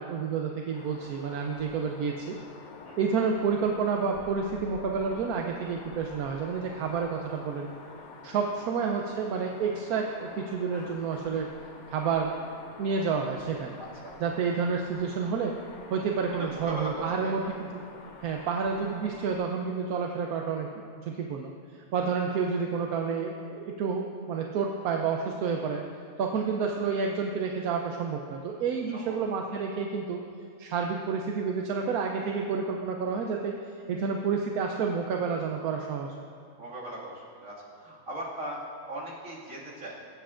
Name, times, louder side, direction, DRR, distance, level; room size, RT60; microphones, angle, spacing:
voice 1, 0.0-2.4 3.0-7.7 8.2-11.5 11.9-12.4 12.8-13.8 14.2-15.5 15.9-17.8 18.2-25.8 26.2-30.2 30.6-33.6 33.9-36.1, right 5 dB, 85° right, 2 dB, 1.2 m, -29 dB
sound 1, 0.7-19.3, left 3 dB, 50° left, 0.6 m, -48 dB
voice 2, 13.8-14.2 16.4-17.5 21.9-22.6 26.3-26.4 28.9-29.2 36.6-38.6 38.9-40.0, right 1 dB, 65° right, -6 dB, 2.5 m, -39 dB
22.5 x 8.1 x 2.5 m, 2.3 s
omnidirectional pair, 1.5 m